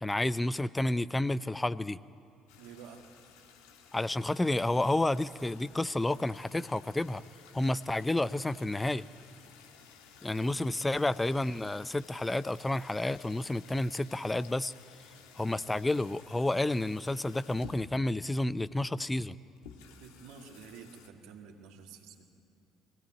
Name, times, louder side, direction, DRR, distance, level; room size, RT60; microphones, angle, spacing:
voice 1, 0.0-2.0 3.9-7.2 7.5-9.0 10.2-14.7 15.4-19.4, left 2 dB, 15° left, 17 dB, 0.6 m, -30 dB
sound 1, 2.5-21.1, left 6 dB, 75° left, 1.5 m, -55 dB
voice 2, 2.6-3.1 20.0-22.2, right 6 dB, 70° right, 2 dB, 2.2 m, -50 dB
23.0 x 17.5 x 9.0 m, 2.7 s
hypercardioid pair, 55°, 0 cm